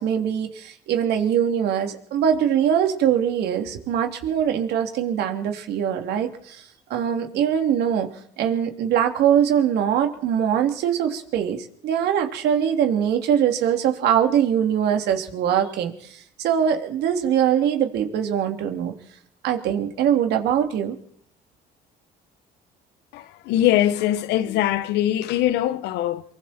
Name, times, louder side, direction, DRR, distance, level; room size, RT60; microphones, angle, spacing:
voice 1, 0.0-6.6 6.9-8.1 8.4-11.6 11.8-18.9 19.4-21.0, right 9 dB, 80° right, 3.3 m, -22 dB
voice 2, 23.1-26.2, left 12 dB, 90° left, 1.3 m, -22 dB
24.0 x 24.0 x 4.5 m
cardioid pair, 110°, 17 cm